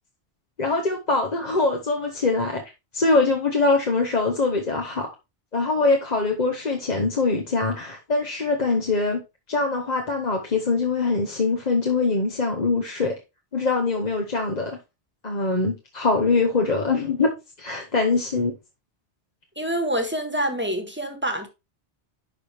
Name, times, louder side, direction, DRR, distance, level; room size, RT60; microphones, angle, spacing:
voice 1, 0.6-2.6 2.9-5.1 5.5-9.2 9.5-13.2 13.5-14.8 15.2-18.5, left 3 dB, 40° left, 1.1 m, -23 dB
voice 2, 19.6-21.5, right 1 dB, 10° right, 1.5 m, -26 dB
11.5 x 4.4 x 3.4 m
omnidirectional pair, 1.1 m